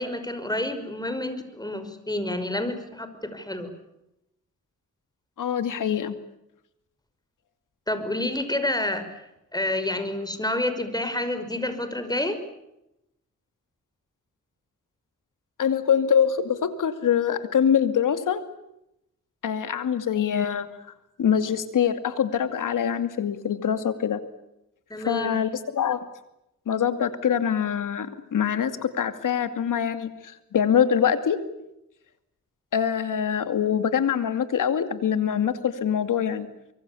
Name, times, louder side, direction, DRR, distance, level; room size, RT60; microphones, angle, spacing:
voice 1, 0.0-3.7 7.9-9.1 9.5-12.4 24.9-25.4, left 1 dB, 10° left, 10 dB, 5.6 m, -29 dB
voice 2, 5.4-6.2 15.6-18.4 19.4-20.7 21.2-24.2 25.1-26.0 26.7-31.4 32.7-36.5, left 8 dB, 90° left, 10 dB, 2.5 m, -24 dB
24.5 x 24.5 x 8.5 m, 0.85 s
cardioid pair, 70°, 31 cm